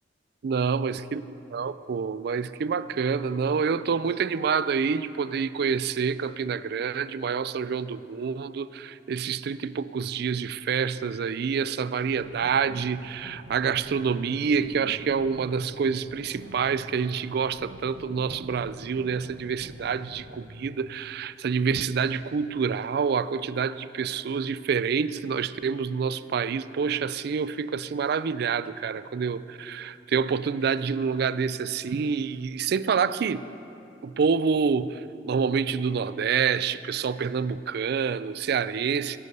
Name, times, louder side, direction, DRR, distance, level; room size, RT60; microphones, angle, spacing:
voice 1, 0.4-1.2 1.5-33.4 34.0-35.0 35.3-39.2, right 6 dB, 60° right, 15 dB, 0.4 m, -27 dB
sound 1, 12.0-21.0, equal, 85° right, 1.2 m, -46 dB
17.5 x 6.9 x 6.6 m, 2.7 s
head